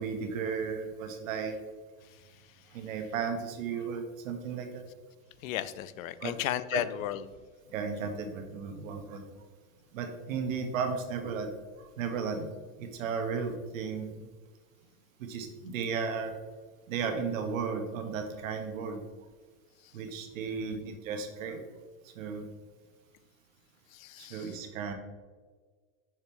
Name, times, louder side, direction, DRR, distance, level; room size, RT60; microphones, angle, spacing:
voice 1, 0.0-1.6 2.7-4.8 6.2-6.3 6.7-6.8 7.7-9.2 9.9-11.5 11.8-12.5 12.8-14.3 15.2-16.3 16.9-19.0 19.9-21.6 22.1-22.5 24.2-24.9, right 5 dB, 75° right, 5 dB, 1.4 m, -34 dB
voice 2, 5.4-7.2 20.5-20.8 23.9-24.6, left 12 dB, 85° left, 15 dB, 0.6 m, -35 dB
6.8 x 6.6 x 3.1 m, 1.4 s
supercardioid pair, 160°, 40 cm